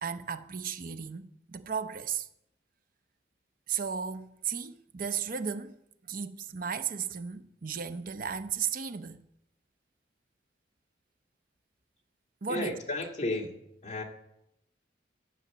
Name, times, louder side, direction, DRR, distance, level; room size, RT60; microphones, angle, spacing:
voice 1, 0.0-2.3 3.7-9.2 12.4-12.8, right 6 dB, 50° right, 0.7 m, -35 dB
voice 2, 12.5-13.5 13.8-14.0, left 2 dB, 40° left, 2.4 m, -32 dB
13.0 x 7.9 x 8.5 m
head